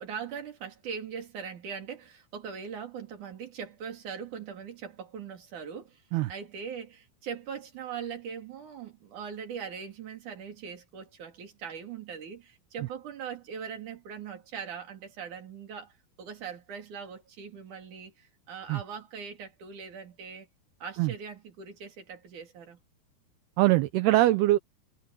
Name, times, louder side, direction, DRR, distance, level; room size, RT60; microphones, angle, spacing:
voice 1, 0.0-6.0 6.3-20.5 20.8-22.8, right 7 dB, 50° right, 4.4 m, -41 dB
voice 2, 23.6-24.6, right 17 dB, 75° right, 2.9 m, -22 dB
omnidirectional pair, 4.8 m